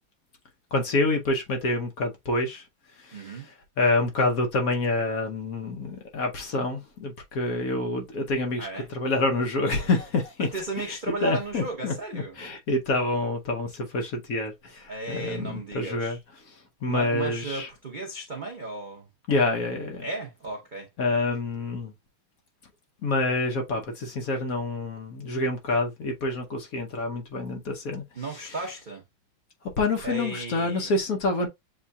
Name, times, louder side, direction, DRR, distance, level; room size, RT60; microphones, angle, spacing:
voice 1, 0.7-2.7 2.9-10.5 10.8-17.7 19.3-20.1 21.0-21.9 23.0-28.6 29.6-31.5, left 2 dB, 55° left, 1.0 m, -27 dB
voice 2, 3.1-3.5 8.6-8.9 10.5-12.3 14.9-16.2 16.9-19.1 20.0-20.9 28.2-29.0 30.0-30.9, right 2 dB, 70° right, 0.4 m, -34 dB
7.3 x 2.6 x 2.2 m
omnidirectional pair, 2.2 m